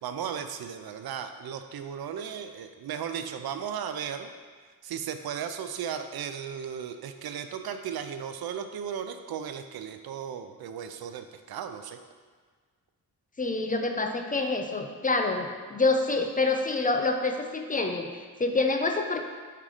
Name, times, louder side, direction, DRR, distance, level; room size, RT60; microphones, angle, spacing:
voice 1, 0.0-4.3 4.8-12.0, right 8 dB, 85° right, 8 dB, 0.5 m, -36 dB
voice 2, 13.4-19.2, left 3 dB, 25° left, 4 dB, 0.4 m, -27 dB
5.6 x 3.6 x 4.9 m, 1.5 s
wide cardioid pair, 110°, 36 cm